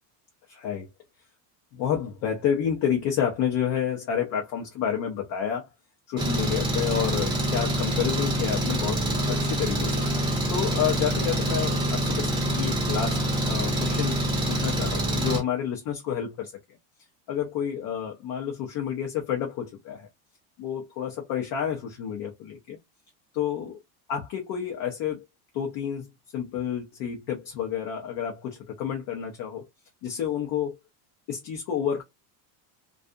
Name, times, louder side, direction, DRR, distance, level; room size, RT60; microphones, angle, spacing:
voice 1, 0.5-0.9 1.7-5.7 6.1-9.0 9.3-10.0 10.5-14.2 14.5-16.5 17.3-20.1 20.6-22.8 23.3-23.8 24.1-25.2 25.5-29.7 30.0-30.8 31.3-32.0, left 8 dB, 40° left, 0.6 m, -29 dB
Engine, 6.2-15.4, equal, 10° right, 0.7 m, -26 dB
2.6 x 2.4 x 2.3 m
supercardioid pair, 160°, 46 cm